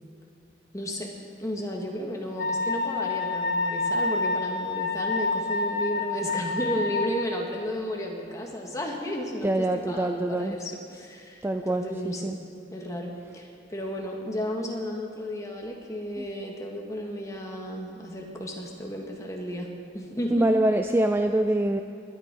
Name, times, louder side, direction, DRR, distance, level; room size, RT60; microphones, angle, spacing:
voice 1, 0.7-1.1 1.4-12.3 12.7-19.7 19.9-20.5, equal, 15° left, 0 dB, 1.7 m, -33 dB
Wind instrument woodwind instrument, 2.4-7.3, left 3 dB, 70° left, 1.1 m, -28 dB
voice 2, 9.4-10.6 11.4-12.4 16.2-16.3 20.3-21.8, right 1 dB, 10° right, 6 dB, 0.3 m, -25 dB
21.0 x 9.5 x 4.9 m, 2.5 s
head